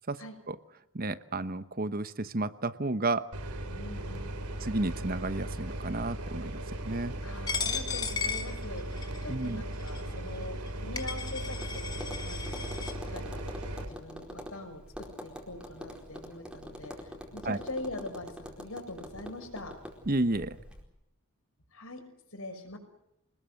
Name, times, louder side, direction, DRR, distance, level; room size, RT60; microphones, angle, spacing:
voice 1, 0.9-3.2 4.6-7.2 9.3-9.6 17.4-17.6 20.1-20.6, right 2 dB, 40° right, 13 dB, 1.0 m, -32 dB
sound 1, 3.3-13.9, right 1 dB, 90° right, 3.4 m, -37 dB
voice 2, 3.7-4.3 7.2-8.8 9.2-13.4 13.9-19.8 21.7-22.0 22.3-22.8, left 2 dB, 70° left, 6 dB, 6.1 m, -43 dB
Coin (dropping), 7.5-9.2 9.9-10.0 10.7-10.8 11.0-12.9, left 6 dB, 20° left, 2.6 m, -35 dB
Tap, 11.5-20.8, equal, 5° right, 4.6 m, -45 dB
27.0 x 20.5 x 7.9 m, 0.83 s
head